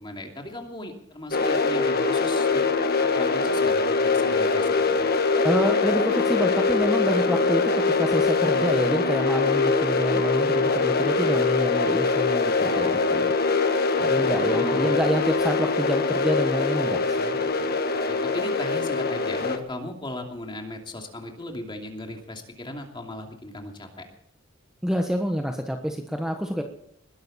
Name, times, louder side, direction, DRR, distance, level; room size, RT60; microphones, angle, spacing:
voice 1, 0.0-2.7 3.0-5.1 8.4-8.7 14.0-15.1 18.1-24.0, left 1 dB, 25° left, 2 dB, 2.8 m, -37 dB
sound 1, 1.3-19.6, left 4 dB, 50° left, 1.5 m, -23 dB
voice 2, 5.4-13.3 14.0-17.5 24.8-26.6, equal, 5° right, 3 dB, 1.2 m, -27 dB
20.5 x 12.0 x 4.3 m, 0.72 s
head